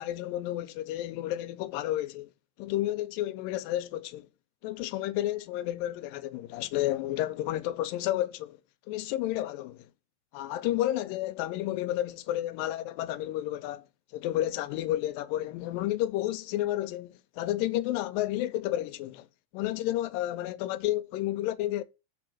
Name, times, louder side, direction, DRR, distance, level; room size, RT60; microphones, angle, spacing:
voice 1, 0.0-2.3 2.6-4.3 4.6-8.6 8.9-9.9 10.3-13.8 14.1-19.3 19.5-21.8, left 14 dB, 90° left, 2.3 m, -31 dB
7.0 x 3.8 x 6.0 m
omnidirectional pair, 4.0 m